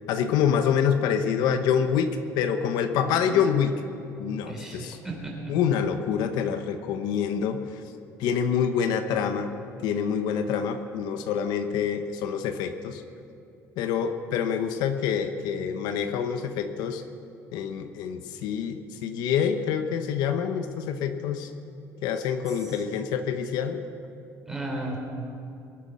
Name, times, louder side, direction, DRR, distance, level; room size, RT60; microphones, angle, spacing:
voice 1, 0.1-3.8 4.2-5.0 5.5-7.6 8.2-9.5 9.8-13.0 13.8-17.0 17.5-21.5 22.0-23.8, left 7 dB, 85° left, 8 dB, 0.9 m, -26 dB
voice 2, 4.5-5.6 22.6-22.7 24.5-25.0, right 2 dB, 5° right, -2 dB, 3.4 m, -35 dB
22.5 x 8.4 x 6.3 m, 2.7 s
cardioid pair, 145°, 7 cm